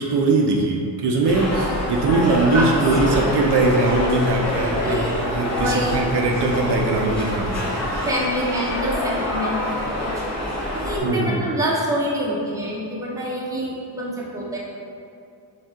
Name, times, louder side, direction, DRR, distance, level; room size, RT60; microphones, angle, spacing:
voice 1, 0.0-8.1 11.0-11.5, right 2 dB, 60° right, 0 dB, 0.6 m, -21 dB
sound 1, 1.3-11.0, left 1 dB, 35° left, 0.9 m, -26 dB
voice 2, 3.0-3.6 4.7-5.1 5.4-6.1 8.1-14.6, right 1 dB, 5° right, -5 dB, 0.7 m, -27 dB
6.3 x 2.4 x 3.6 m, 2.5 s
wide cardioid pair, 130°, 46 cm